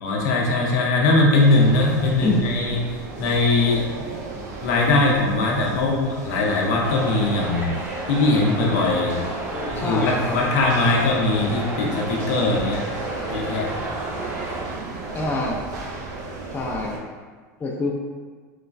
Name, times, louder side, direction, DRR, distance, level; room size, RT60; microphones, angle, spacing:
voice 1, 0.0-4.1 4.6-7.7 8.1-9.2 9.7-12.8 13.3-13.7, left 2 dB, 70° left, -1 dB, 0.6 m, -21 dB
sound 1, 1.5-17.0, right 3 dB, 80° right, 0.5 m, -35 dB
sound 2, 6.8-14.6, right 1 dB, 20° right, 0.7 m, -32 dB
voice 2, 9.5-10.4 15.1-15.6 16.5-17.0 17.6-17.9, left 3 dB, 20° left, -1 dB, 0.4 m, -26 dB
3.1 x 2.2 x 2.4 m, 1.5 s
hypercardioid pair, 105°, 9 cm